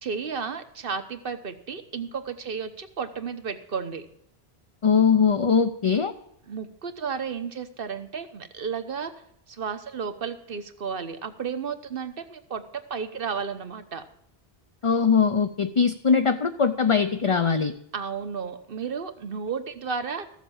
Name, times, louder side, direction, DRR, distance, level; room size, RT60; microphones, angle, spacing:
voice 1, 0.0-4.0 6.5-9.1 9.5-14.1 17.9-20.3, right 6 dB, 65° right, 10 dB, 1.2 m, -33 dB
voice 2, 4.8-6.1 14.8-17.7, left 6 dB, 35° left, 9 dB, 0.6 m, -21 dB
14.5 x 7.3 x 7.2 m, 0.72 s
omnidirectional pair, 1.0 m